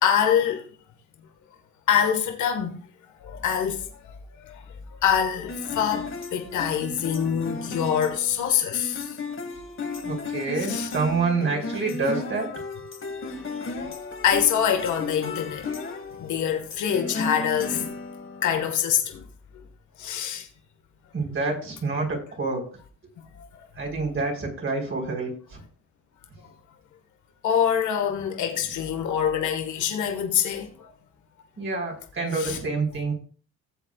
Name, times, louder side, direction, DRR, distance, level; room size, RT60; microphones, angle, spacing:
voice 1, 0.0-0.6 1.9-2.8 3.2-3.9 4.4-4.6 4.9-9.2 10.6-10.9 13.3-15.7 16.2-17.9 18.4-19.2 20.0-20.5 23.3-23.5 27.4-30.9 32.3-32.6, left 8 dB, 75° left, 1.6 m, -25 dB
sound 1, 5.5-18.7, left 4 dB, 45° left, 1.8 m, -34 dB
voice 2, 10.0-12.5 21.1-22.6 23.8-25.3 31.6-33.1, right 3 dB, 45° right, 4.2 m, -27 dB
15.5 x 7.6 x 2.4 m
cardioid pair, 90°, 30 cm